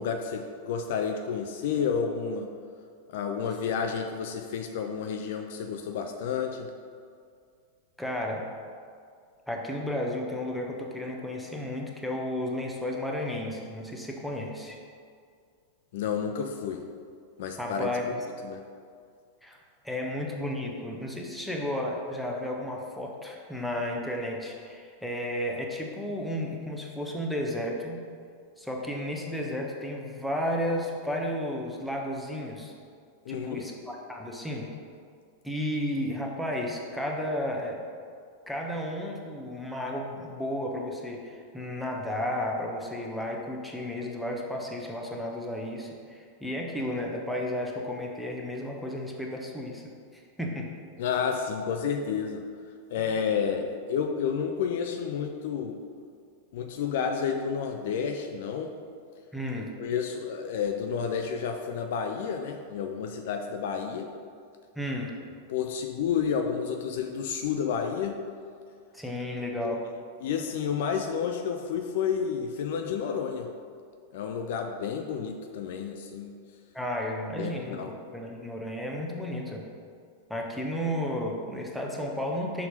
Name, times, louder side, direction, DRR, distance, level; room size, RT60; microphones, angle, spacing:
voice 1, 0.0-2.5 3.1-6.7 15.9-16.8 17.4-18.1 18.4-18.6 33.3-33.7 51.0-52.4 52.9-55.8 56.5-58.7 59.5-64.1 65.5-68.2 69.6-69.7 70.2-73.5 74.1-76.3 77.3-77.9, left 7 dB, 55° left, 4 dB, 0.5 m, -30 dB
voice 2, 8.0-8.4 9.5-14.8 17.6-18.1 19.4-19.6 19.8-28.0 28.6-32.7 33.3-34.7 35.4-37.8 38.5-49.8 50.1-50.7 53.0-53.1 59.3-59.7 64.8-65.1 68.9-69.8 76.7-79.6 80.3-82.7, left 1 dB, ahead, -1 dB, 0.9 m, -33 dB
6.2 x 4.3 x 5.2 m, 2.2 s
figure-of-eight pair, 90°, 0 cm